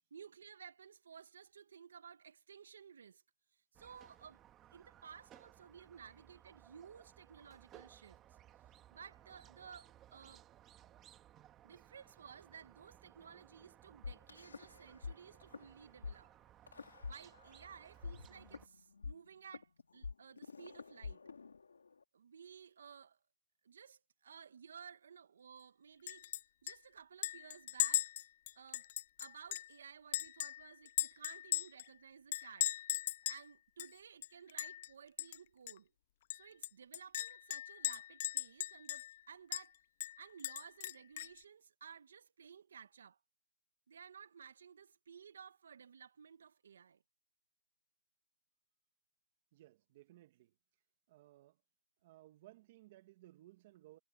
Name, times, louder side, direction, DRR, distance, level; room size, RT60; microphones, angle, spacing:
voice 1, 0.1-3.2 3.5-4.4 4.7-8.2 8.9-10.5 11.6-16.3 17.0-21.2 22.1-23.2 23.6-26.3 26.6-28.1 28.6-28.9 29.2-32.8 33.3-35.9 36.3-39.8 40.2-43.2 43.9-47.0, right 7 dB, 55° right, 1.8 m, -56 dB
Squeak, 3.7-18.7, right 12 dB, 15° right, 2.0 m, -62 dB
sound 1, 14.0-15.1 15.4-15.6 16.0-16.1 16.7-17.7 18.0-22.0, left 5 dB, 85° left, 2.7 m, -47 dB
Chink clink, 26.1-26.4 26.7-26.8 27.2-29.7 30.1-31.9 32.3-33.4 33.8-33.9 34.2-34.9 35.2-35.4 35.7-35.8 36.3-39.2 39.5-39.7 40.0-41.4, left 13 dB, 35° left, 0.4 m, -38 dB
voice 2, 49.5-50.5 51.1-51.6 52.0-54.0, right 16 dB, 30° right, 1.6 m, -60 dB
hypercardioid pair, 165°, 0 cm